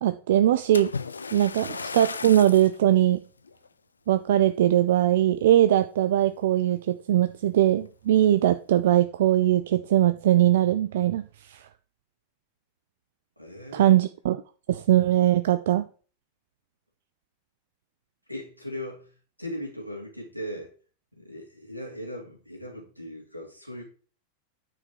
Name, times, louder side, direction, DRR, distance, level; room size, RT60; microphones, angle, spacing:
voice 1, 0.0-0.9 1.3-3.2 4.1-11.2 11.5-11.6 13.7-14.4 14.7-15.9, right 12 dB, 55° right, 0.4 m, -21 dB
Splash splatter, 0.7-2.8 3.4-3.7 4.3-4.4, left 5 dB, 75° left, 0.4 m, -35 dB
voice 2, 13.4-14.0 18.3-20.7 21.1-23.8, equal, 90° right, 2.8 m, -38 dB
9.5 x 5.1 x 4.9 m
figure-of-eight pair, 90°, 0 cm